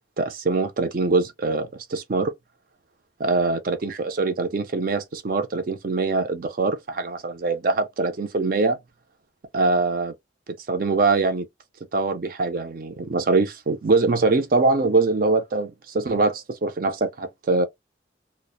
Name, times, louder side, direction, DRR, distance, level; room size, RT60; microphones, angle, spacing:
voice 1, 0.2-2.3 3.2-8.8 9.5-10.1 10.7-11.5 11.9-17.7, right 3 dB, 45° right, 0.4 m, -23 dB
2.4 x 2.0 x 2.5 m
head